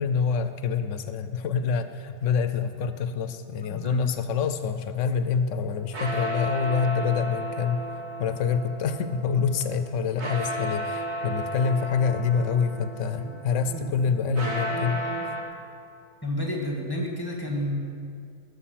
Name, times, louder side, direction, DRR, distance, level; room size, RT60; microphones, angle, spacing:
voice 1, 0.0-15.1, left 6 dB, 85° left, 10 dB, 0.9 m, -26 dB
voice 2, 3.7-4.0 13.7-13.9 14.7-15.3 16.2-17.8, left 1 dB, 20° left, -2 dB, 1.8 m, -31 dB
sound 1, 5.7-15.4, right 1 dB, 65° right, 1.6 m, -34 dB
14.5 x 6.6 x 5.8 m, 2.4 s
omnidirectional pair, 1.2 m